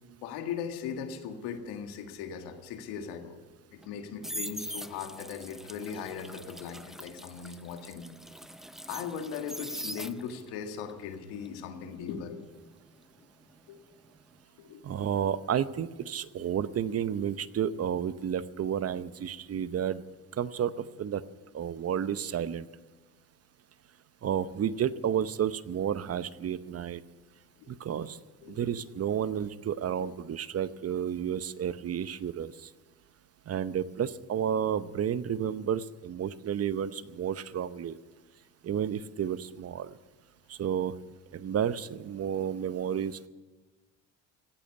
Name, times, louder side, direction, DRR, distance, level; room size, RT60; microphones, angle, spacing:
voice 1, 0.2-3.4 3.7-8.1 8.9-12.4 13.7-13.8 14.6-14.8 16.4-16.5 27.6-27.8 28.4-28.7, left 7 dB, 85° left, 6 dB, 1.9 m, -39 dB
sound 1, 3.8-10.5 10.9-13.8 14.0-14.4, equal, ahead, 0.4 m, -42 dB
voice 2, 14.8-20.0 20.4-21.2 21.5-22.7 24.2-27.0 27.7-28.2 28.5-32.7 33.5-38.0 38.6-39.9 40.5-40.9 41.3-43.3, right 9 dB, 40° right, 15 dB, 0.8 m, -31 dB
15.5 x 8.8 x 9.5 m, 1.2 s
supercardioid pair, 80°, 37 cm